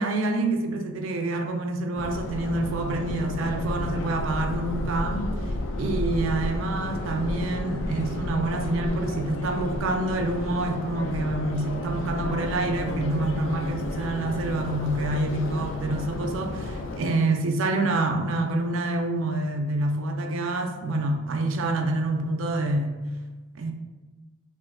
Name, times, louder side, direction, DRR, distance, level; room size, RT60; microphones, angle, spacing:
voice 1, 0.0-5.3 5.8-23.0 23.6-23.7, right 2 dB, 80° right, 4 dB, 0.4 m, -27 dB
Subway metro underground, 2.0-17.0, left 2 dB, 70° left, 0.3 m, -32 dB
2.5 x 2.2 x 3.6 m, 1.2 s
head